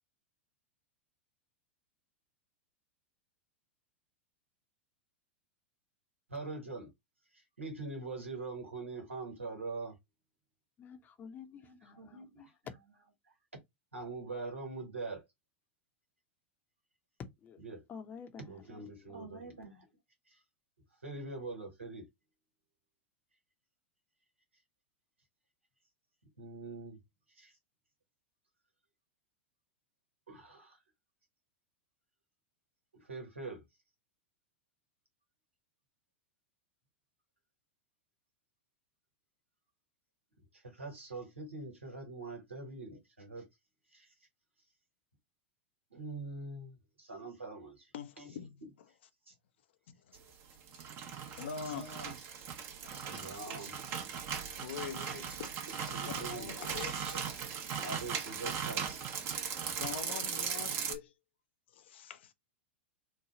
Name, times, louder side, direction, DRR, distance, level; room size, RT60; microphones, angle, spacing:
voice 1, 6.3-6.9 7.6-9.9 11.5-12.4 13.9-15.2 17.6-17.8 18.5-19.8 21.0-22.0 26.4-27.0 27.4-27.5 30.3-30.8 32.9-33.6 40.6-43.4 43.9-44.1 45.9-47.9 48.2-48.3 51.7-52.5 52.9-53.7 54.9-55.3 55.9-57.4 57.8-59.3, right 3 dB, 90° right, 1.4 m, -44 dB
voice 2, 10.8-12.5 17.4-17.6 17.9-19.2, left 6 dB, 30° left, 0.8 m, -51 dB
voice 3, 47.9-48.6 49.9-50.0 51.3-51.9 52.8-53.4 54.3-55.5 55.9-57.1 59.6-61.1 61.7-62.3, left 8 dB, 65° left, 0.6 m, -44 dB
sound 1, 50.5-61.0, right 7 dB, 40° right, 0.9 m, -38 dB
3.3 x 2.1 x 3.8 m
figure-of-eight pair, 95°, 7 cm